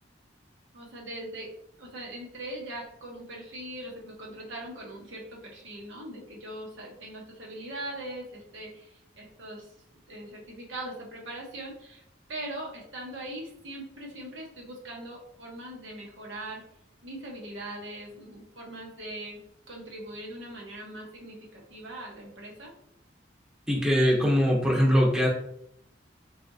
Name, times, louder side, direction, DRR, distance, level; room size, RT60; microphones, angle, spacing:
voice 1, 0.7-1.5 1.8-9.7 10.1-16.6 17.0-19.4 19.7-22.7, right 1 dB, 85° right, -1 dB, 1.0 m, -41 dB
voice 2, 23.7-25.3, equal, 5° right, -3 dB, 0.6 m, -22 dB
3.9 x 3.2 x 2.6 m, 0.75 s
head